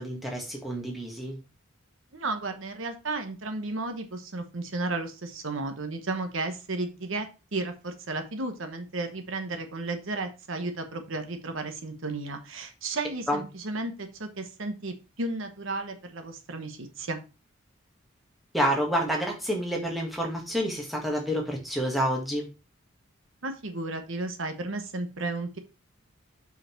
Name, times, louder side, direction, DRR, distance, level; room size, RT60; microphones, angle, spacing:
voice 1, 0.0-1.4 13.3-13.4 18.5-22.5, equal, ahead, -1 dB, 1.6 m, -28 dB
voice 2, 2.1-17.2 23.4-25.6, right 2 dB, 70° right, 7 dB, 1.0 m, -33 dB
5.7 x 5.1 x 4.4 m, 0.30 s
head